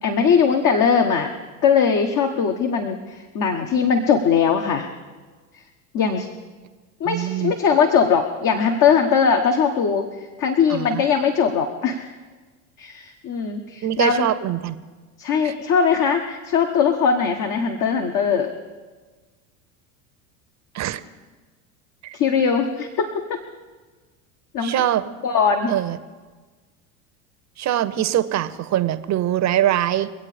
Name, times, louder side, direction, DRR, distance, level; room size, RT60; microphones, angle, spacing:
voice 1, 0.0-1.3 1.6-4.9 5.5-5.6 5.9-6.3 7.0-12.1 12.8-14.3 15.2-18.5 22.1-23.4 24.5-24.7 25.2-25.7, left 6 dB, 45° left, 4 dB, 1.4 m, -20 dB
voice 2, 7.0-7.5 10.7-11.0 13.8-14.8 15.4-15.5 20.7-21.0 22.0-22.1 24.6-25.0 25.7-26.0 27.6-30.1, right 12 dB, 40° right, 13 dB, 0.9 m, -23 dB
24.5 x 8.4 x 5.1 m, 1.4 s
hypercardioid pair, 80°, 43 cm